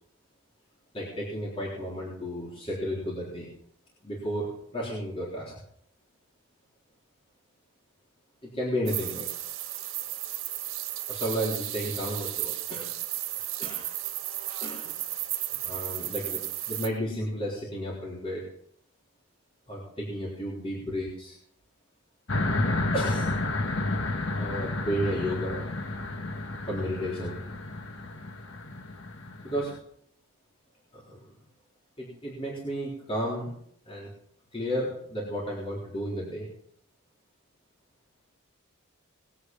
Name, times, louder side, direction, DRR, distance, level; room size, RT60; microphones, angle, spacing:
voice 1, 0.9-3.5 4.0-5.5 8.4-9.3 11.1-12.9 13.6-13.8 14.6-14.9 15.6-16.4 16.7-18.5 19.7-21.4 22.9-23.4 24.4-25.6 26.6-27.4 29.4-29.7 30.9-31.2 32.0-33.5 33.9-34.1 34.5-36.5, equal, 25° left, -5 dB, 3.8 m, -33 dB
sound 1, 8.9-16.9, right 13 dB, 65° right, 1.9 m, -34 dB
sound 2, 22.3-29.8, left 2 dB, 60° left, 1.4 m, -31 dB
20.5 x 8.6 x 5.4 m, 0.69 s
head